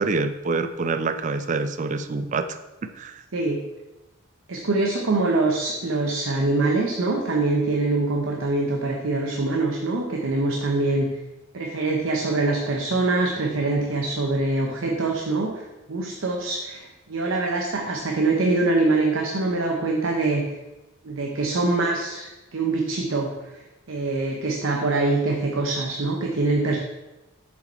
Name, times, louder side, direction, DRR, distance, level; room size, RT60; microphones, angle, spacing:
voice 1, 0.0-3.2, right 3 dB, 35° right, 10 dB, 0.4 m, -26 dB
voice 2, 3.3-3.6 4.5-11.2 11.5-20.5 21.0-23.6 23.9-26.8, right 2 dB, 75° right, 1 dB, 0.8 m, -24 dB
6.9 x 5.0 x 4.3 m, 1.0 s
head